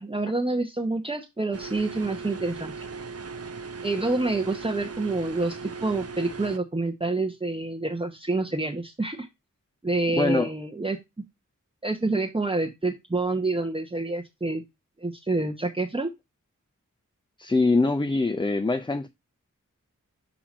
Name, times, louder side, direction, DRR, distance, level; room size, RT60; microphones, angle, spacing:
voice 1, 0.0-2.9 3.8-9.3 9.8-11.0 11.8-14.6 15.0-16.1, right 2 dB, 15° right, 0.9 m, -27 dB
sound 1, 1.5-6.6, right 4 dB, 50° right, 0.6 m, -38 dB
voice 2, 10.2-10.5 17.4-19.1, left 3 dB, 15° left, 0.4 m, -23 dB
7.3 x 3.0 x 4.9 m
wide cardioid pair, 80°, 32 cm